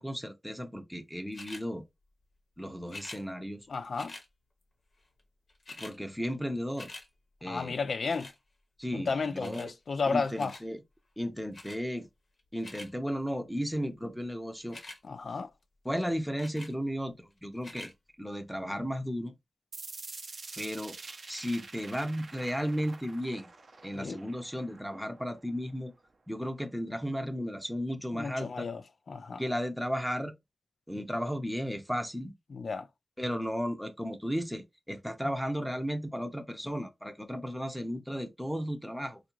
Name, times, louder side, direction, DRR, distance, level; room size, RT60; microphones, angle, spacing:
voice 1, 0.0-1.8 2.6-3.7 5.8-6.9 7.4-7.8 8.8-9.7 10.1-10.8 11.2-12.1 12.5-14.8 15.8-17.9 18.2-19.3 20.6-21.0 21.3-23.5 23.8-25.9 26.3-28.7 29.4-30.3 30.9-32.3 33.2-39.2, equal, ahead, 0.6 m, -34 dB
sound 1, 1.3-1.7 2.9-3.2 3.9-4.3 5.2-5.3 5.5-6.0 6.3-7.1 8.1-8.4 9.4-9.7 10.4-10.7 11.5-11.8 12.4-12.9 14.6-15.0 16.4-16.7 17.6-17.9 18.6-18.7, left 2 dB, 70° left, 0.8 m, -46 dB
voice 2, 3.7-4.1 7.5-8.3 8.9-10.6 15.0-15.5 23.9-24.2 28.1-28.8 29.1-29.4 32.5-32.9, left 4 dB, 90° left, 0.3 m, -33 dB
sound 2, 19.7-25.7, right 3 dB, 80° right, 0.6 m, -47 dB
3.5 x 2.4 x 3.0 m
wide cardioid pair, 65°, 0 cm